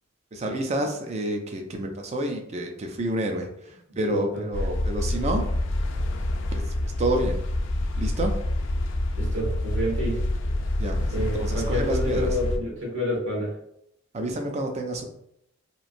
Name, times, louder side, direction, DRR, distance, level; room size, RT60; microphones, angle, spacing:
voice 1, 0.3-5.5 6.5-7.4 7.9-8.4 10.8-12.3 14.1-15.0, right 1 dB, 35° right, 4 dB, 0.4 m, -29 dB
voice 2, 3.9-4.4 9.2-10.2 11.1-13.5, equal, 75° right, -3 dB, 1.3 m, -29 dB
sound 1, 4.5-12.6, left 1 dB, 75° left, 0.4 m, -27 dB
3.0 x 2.5 x 2.5 m, 0.75 s
head